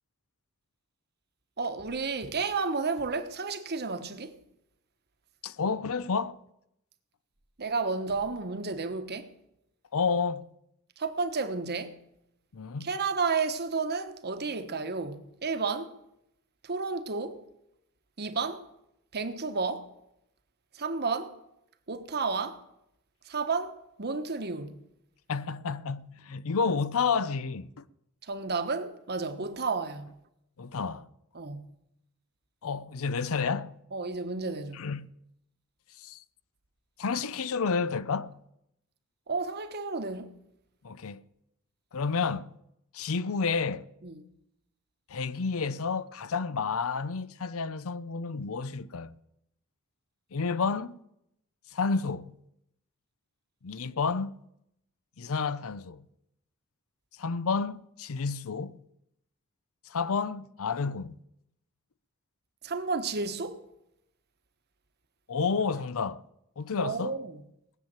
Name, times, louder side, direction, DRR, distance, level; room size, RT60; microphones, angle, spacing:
voice 1, 1.6-4.4 7.6-9.3 11.0-12.0 12.8-16.0 16.6-17.4 18.2-18.6 19.1-19.9 20.7-21.4 21.9-22.6 23.2-24.8 28.2-30.2 31.3-31.7 33.9-34.8 39.3-40.3 44.0-44.3 62.6-63.6 66.8-67.4, right 4 dB, 50° right, 1.2 m, -32 dB
voice 2, 5.4-6.4 9.9-10.5 12.5-12.9 25.3-27.7 30.6-31.1 32.6-33.8 34.7-35.1 36.0-36.2 37.0-38.4 40.8-41.2 41.9-42.5 42.9-43.8 45.1-49.1 50.3-51.0 51.7-52.3 53.6-54.4 55.2-56.0 57.2-58.8 59.9-61.2 65.3-66.2 66.6-67.2, left 5 dB, 65° left, 0.6 m, -30 dB
18.5 x 7.4 x 8.8 m
head